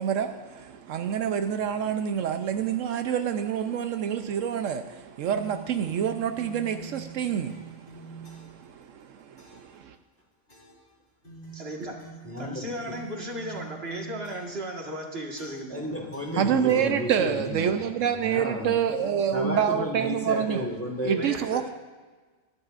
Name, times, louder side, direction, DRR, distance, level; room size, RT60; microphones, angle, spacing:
voice 1, 0.0-10.0 16.3-20.7 21.0-21.7, right 8 dB, 80° right, 1.0 m, -27 dB
sound 1, 5.2-8.7 9.4-9.8 10.5-10.9 11.2-14.7 15.4-15.8 16.1-17.5, right 4 dB, 40° left, 3.0 m, -46 dB
voice 2, 11.5-12.1 12.4-15.9 21.1-21.7, right 1 dB, 50° right, 1.9 m, -35 dB
voice 3, 12.2-12.9 15.7-17.7 18.2-18.7 19.3-21.2, equal, 10° left, 1.5 m, -32 dB
22.0 x 10.5 x 2.5 m
omnidirectional pair, 1.3 m